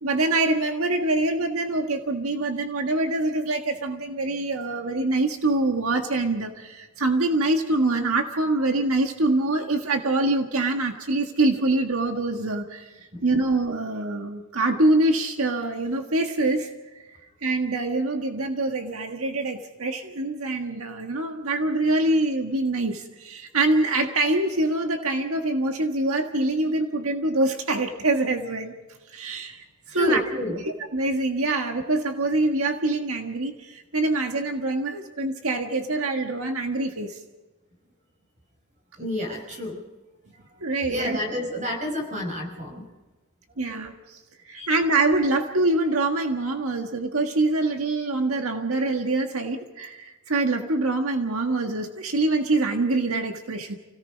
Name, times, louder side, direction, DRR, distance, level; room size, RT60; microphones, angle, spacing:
voice 1, 0.0-28.7 29.1-30.2 30.6-37.2 40.6-41.2 43.6-53.8, right 2 dB, 90° right, 4 dB, 1.6 m, -25 dB
voice 2, 29.9-30.6 39.0-39.8 40.5-40.6 40.9-42.9 44.5-44.7, left 1 dB, 35° right, 2 dB, 5.8 m, -29 dB
29.5 x 17.5 x 5.1 m, 1.2 s
head